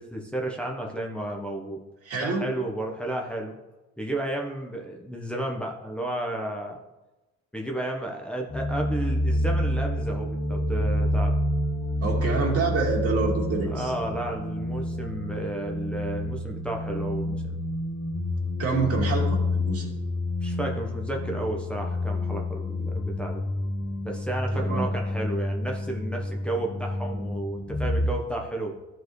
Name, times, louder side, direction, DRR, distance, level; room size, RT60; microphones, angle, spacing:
voice 1, 0.0-1.8 2.2-3.6 4.0-6.8 7.5-11.3 12.3-12.4 13.7-17.5 20.4-23.4 24.0-28.7, right 1 dB, 5° left, -1 dB, 1.1 m, -32 dB
voice 2, 2.1-2.5 12.0-13.9 18.6-19.9 24.5-24.9, right 4 dB, 50° right, -2 dB, 2.5 m, -27 dB
sound 1, 8.5-28.1, left 1 dB, 55° left, 2.2 m, -28 dB
13.0 x 4.7 x 3.2 m, 1.1 s
cardioid pair, 90°, 30 cm